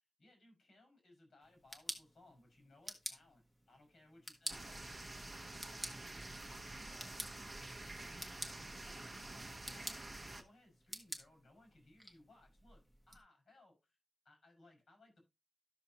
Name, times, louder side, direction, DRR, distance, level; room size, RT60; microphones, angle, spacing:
voice 1, 0.2-4.8 5.1-7.6 7.9-14.0 14.2-15.2, left 2 dB, 50° left, 5.8 m, -65 dB
sound 1, 1.4-13.2, equal, ahead, 1.2 m, -51 dB
sound 2, 4.5-10.4, right 2 dB, 20° right, 1.0 m, -48 dB
12.0 x 6.5 x 2.9 m
wide cardioid pair, 165°, 0 cm